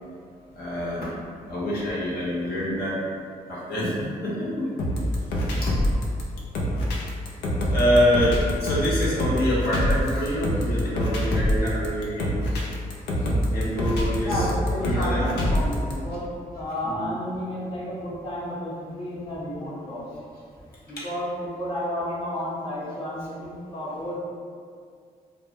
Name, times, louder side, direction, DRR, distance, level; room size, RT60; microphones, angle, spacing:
voice 1, 0.5-1.1 1.5-3.0 3.5-4.7 5.6-5.8 7.7-12.3 13.5-14.5 14.8-15.3 16.8-17.1 21.0-21.1, equal, 65° left, -7 dB, 0.8 m, -26 dB
sound 1, 4.8-15.9, equal, 90° left, 0.4 m, -25 dB
voice 2, 14.2-20.0 20.9-24.2, left 1 dB, 30° left, -7 dB, 0.7 m, -31 dB
2.1 x 2.1 x 2.8 m, 2.2 s
supercardioid pair, 55°, 17 cm